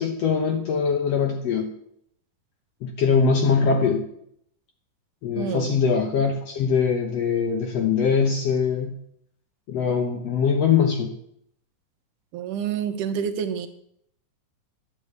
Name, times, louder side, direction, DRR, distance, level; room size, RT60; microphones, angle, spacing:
voice 1, 0.0-1.7 2.8-4.0 5.2-8.9 9.7-11.1, left 6 dB, 65° left, 4 dB, 1.7 m, -22 dB
voice 2, 5.4-5.7 12.3-13.7, right 8 dB, 75° right, 9 dB, 2.1 m, -28 dB
11.0 x 8.1 x 8.1 m, 0.71 s
omnidirectional pair, 4.0 m